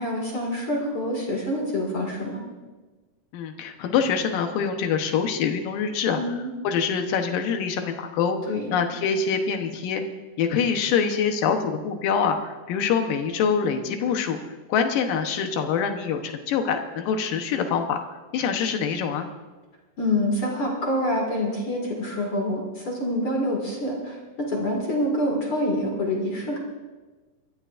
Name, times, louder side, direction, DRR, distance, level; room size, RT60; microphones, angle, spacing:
voice 1, 0.0-2.4 6.1-6.5 8.5-8.8 20.0-24.2 24.5-26.6, left 1 dB, 40° left, -1 dB, 2.3 m, -26 dB
voice 2, 3.3-6.2 6.6-10.0 10.4-18.0 18.3-19.3, left 6 dB, 70° left, 5 dB, 2.3 m, -25 dB
28.5 x 13.5 x 2.6 m, 1.3 s
omnidirectional pair, 4.9 m